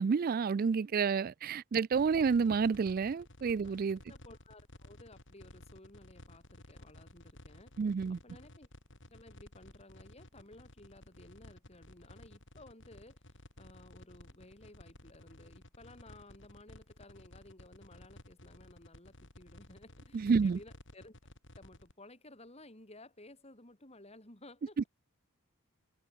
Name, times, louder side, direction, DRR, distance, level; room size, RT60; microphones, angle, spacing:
voice 1, 0.0-4.0 7.8-8.2 20.1-20.6, right 5 dB, 40° right, 0.3 m, -29 dB
sound 1, 1.9-21.9, left 1 dB, 60° left, 4.8 m, -55 dB
voice 2, 4.1-7.8 8.1-8.7 9.1-21.2 21.6-24.9, left 2 dB, 30° left, 4.2 m, -56 dB
head